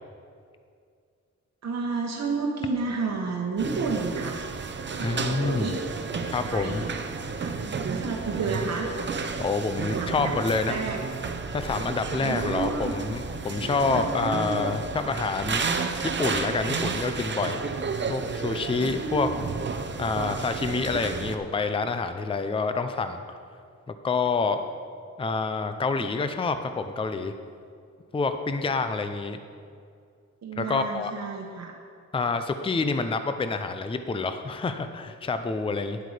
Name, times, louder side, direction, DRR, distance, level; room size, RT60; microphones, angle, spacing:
voice 1, 1.6-4.4 4.9-5.8 6.4-6.9 7.4-8.9 9.9-10.3 10.7-11.0 12.1-12.9 13.9-14.1 18.8-19.4 30.4-31.8, right 4 dB, 60° right, -1 dB, 1.0 m, -31 dB
sound 1, 3.6-21.4, right 4 dB, 40° right, 0.7 m, -32 dB
voice 2, 5.0-5.8 6.3-6.9 9.4-10.8 11.5-15.7 16.0-17.6 18.1-19.3 20.0-23.2 24.0-24.6 25.2-27.3 28.1-29.4 30.6-31.1 32.1-36.0, left 4 dB, 20° left, 9 dB, 0.5 m, -27 dB
10.5 x 8.1 x 4.9 m, 2.3 s
wide cardioid pair, 110°, 30 cm